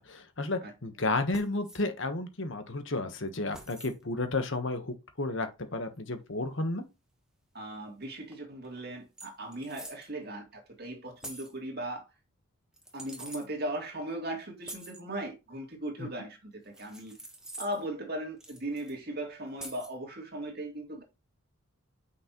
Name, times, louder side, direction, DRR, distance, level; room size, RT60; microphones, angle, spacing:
voice 1, 0.0-6.8 16.0-16.1, left 2 dB, 55° left, 1.2 m, -32 dB
sound 1, 1.3-1.8 3.5-4.0 6.0-6.1 8.3-8.4 8.6-8.8 9.2-10.1 11.2-11.6 12.7-13.5 14.6-15.0 16.7-17.9 18.4-18.9 19.6-20.0, right 1 dB, 5° right, 1.2 m, -46 dB
voice 2, 7.5-12.0 12.9-17.1 17.6-21.0, right 1 dB, 45° right, 2.2 m, -38 dB
6.5 x 5.8 x 3.0 m
head